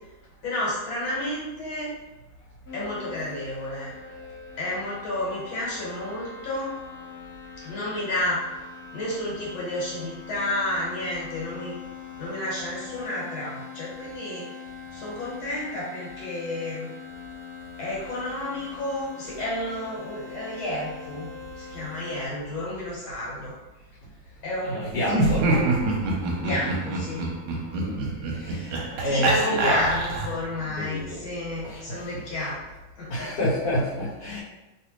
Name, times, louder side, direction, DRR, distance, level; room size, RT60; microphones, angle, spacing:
voice 1, 0.4-1.9 2.7-3.9 4.6-6.7 7.6-8.4 8.9-11.8 12.2-14.5 14.9-16.9 17.8-23.5 24.4-25.8 26.4-27.2 29.1-32.6 33.0-33.3, left 1 dB, 75° left, -6 dB, 1.9 m, -31 dB
sound 1, 2.7-22.3, left 5 dB, 40° left, 1.1 m, -42 dB
voice 2, 24.6-25.5 27.8-28.0 28.3-29.8 30.6-31.3 31.6-32.5 33.1-34.4, left 1 dB, 60° left, -8 dB, 1.6 m, -29 dB
Laughter, 25.0-30.5, right 2 dB, 65° right, 1.1 m, -26 dB
3.3 x 2.9 x 3.0 m, 1.1 s
omnidirectional pair, 2.2 m